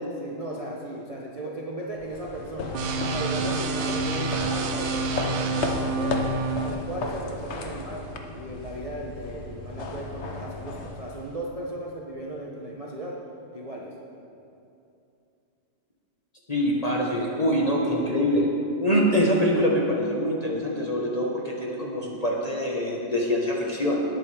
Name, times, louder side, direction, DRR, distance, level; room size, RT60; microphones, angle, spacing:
voice 1, 0.2-2.8 3.1-6.2 6.6-13.2 13.5-13.9, right 1 dB, 50° right, -3 dB, 0.4 m, -36 dB
sound 1, 2.0-11.6, left 3 dB, 55° left, 0.7 m, -35 dB
sound 2, 2.7-6.7, right 3 dB, 75° right, 1.6 m, -28 dB
voice 2, 16.5-18.5 18.8-24.0, equal, 25° left, -3 dB, 0.9 m, -24 dB
18.0 x 8.3 x 3.4 m, 2.7 s
omnidirectional pair, 2.3 m